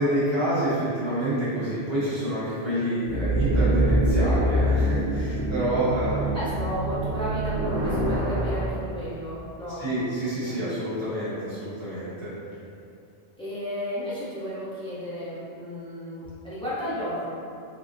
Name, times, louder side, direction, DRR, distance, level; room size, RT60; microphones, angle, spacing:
voice 1, 0.0-6.5 9.8-12.6, right 1 dB, 25° right, -13 dB, 1.0 m, -28 dB
sound 1, 3.1-8.6, right 1 dB, 75° right, 1.0 m, -25 dB
voice 2, 6.3-9.9 10.4-10.6 13.4-17.3, equal, 5° left, -11 dB, 0.6 m, -33 dB
3.7 x 2.0 x 2.6 m, 2.5 s
omnidirectional pair, 1.1 m